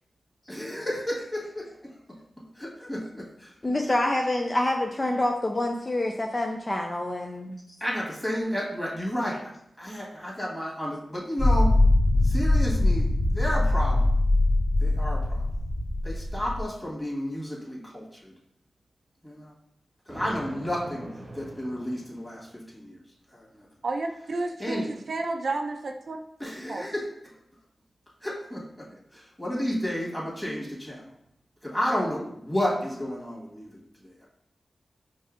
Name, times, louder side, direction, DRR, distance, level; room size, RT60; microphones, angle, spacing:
voice 1, 0.5-1.9 2.6-3.5 7.8-9.4 9.8-11.7 12.2-14.1 14.8-15.5 16.0-18.3 19.2-19.5 20.1-21.1 21.3-23.0 23.3-23.7 24.6-25.0 26.4-27.1 28.2-28.6 29.1-31.1 31.6-33.7 34.0-34.3, equal, 10° left, -5 dB, 1.5 m, -32 dB
voice 2, 3.6-7.6, left 1 dB, 25° left, 2 dB, 0.3 m, -27 dB
sound 1, 11.4-16.6, left 2 dB, 65° left, 1.4 m, -22 dB
Thunder, 20.1-22.6, right 1 dB, 35° right, 0.8 m, -43 dB
voice 3, 23.8-26.2 26.7-26.9, right 3 dB, 70° right, 4 dB, 0.4 m, -31 dB
5.4 x 2.6 x 2.5 m, 0.77 s
wide cardioid pair, 85°, 0 cm